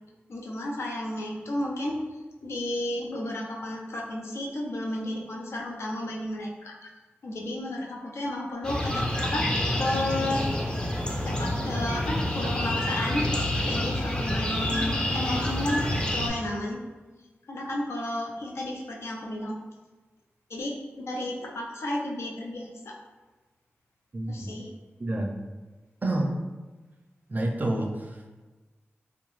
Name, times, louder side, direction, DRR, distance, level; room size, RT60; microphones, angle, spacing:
voice 1, 0.3-2.0 2.4-6.8 7.2-10.5 11.2-13.3 13.6-16.8 17.5-19.6 20.5-22.9 24.3-24.7, left 1 dB, 80° left, -1 dB, 0.5 m, -32 dB
sound 1, 8.6-16.3, left 1 dB, 20° left, 0.5 m, -28 dB
voice 2, 24.1-24.6 25.0-25.3 26.0-26.3 27.3-28.3, right 1 dB, 40° right, 2 dB, 0.4 m, -29 dB
2.8 x 2.0 x 3.1 m, 1.2 s
cardioid pair, 60°, 4 cm